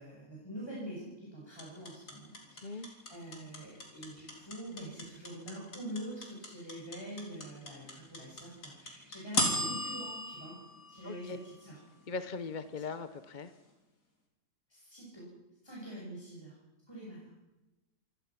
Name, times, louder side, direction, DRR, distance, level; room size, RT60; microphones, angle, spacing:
voice 1, 0.0-10.6 10.9-11.8 14.7-15.3 15.6-16.5 16.9-17.3, equal, 15° left, -5 dB, 6.0 m, -45 dB
sound 1, 1.6-11.8, left 1 dB, 80° left, 4.5 m, -36 dB
voice 2, 11.1-11.4 12.1-13.5, left 4 dB, 35° left, 10 dB, 0.8 m, -39 dB
27.0 x 17.5 x 6.0 m, 1.0 s
omnidirectional pair, 1.7 m